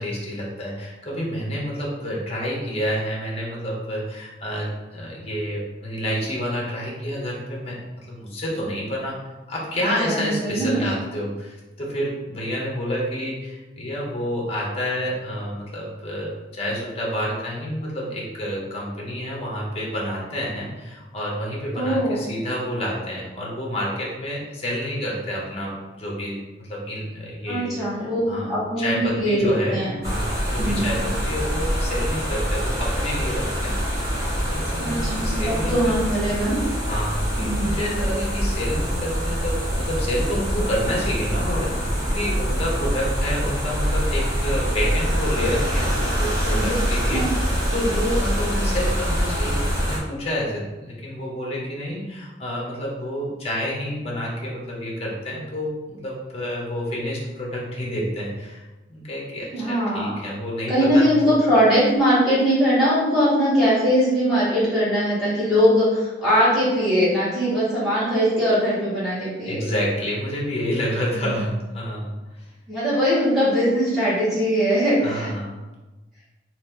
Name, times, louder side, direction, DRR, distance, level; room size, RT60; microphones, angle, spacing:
voice 1, 0.0-9.1 9.5-27.7 28.3-34.0 34.4-36.0 36.8-58.6 58.9-61.2 69.4-72.5 75.0-75.6, equal, 30° left, -3 dB, 0.8 m, -29 dB
voice 2, 9.8-10.7 21.7-22.2 27.5-29.9 30.6-30.9 34.8-36.6 37.4-37.8 46.5-46.7 47.1-47.3 59.5-60.2 60.7-69.6 71.1-71.5 72.7-75.3, equal, ahead, -12 dB, 1.4 m, -21 dB
sound 1, 30.0-50.0, equal, 20° right, 0.8 m, -24 dB
2.9 x 2.5 x 3.6 m, 1.1 s
head